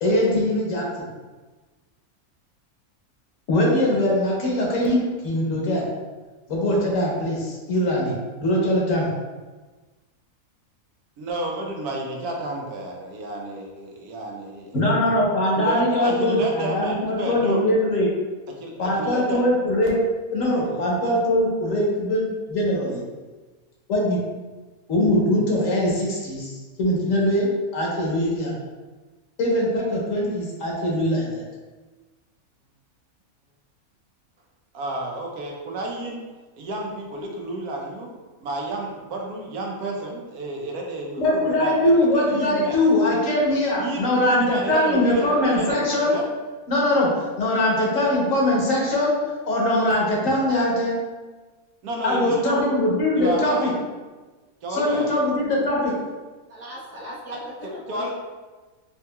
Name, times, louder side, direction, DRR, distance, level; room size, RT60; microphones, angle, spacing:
voice 1, 0.0-1.0 3.5-5.9 6.5-9.1 14.7-18.1 18.8-20.0 20.3-23.0 23.9-24.2 24.9-28.5 29.4-31.4 41.2-46.1 46.7-49.2 49.5-51.0 52.0-53.7 54.7-55.9, left 1 dB, 65° left, -3 dB, 1.3 m, -22 dB
voice 2, 11.2-14.8 15.5-17.7 18.5-19.4 20.7-20.9 34.7-36.3 36.6-38.1 38.4-42.8 43.8-46.2 51.8-52.7 53.2-53.7 54.6-55.1 57.6-58.1, right 1 dB, 90° right, 0 dB, 1.2 m, -31 dB
voice 3, 56.5-58.1, equal, 15° left, -8 dB, 0.4 m, -37 dB
4.6 x 2.9 x 2.2 m, 1.3 s
omnidirectional pair, 1.5 m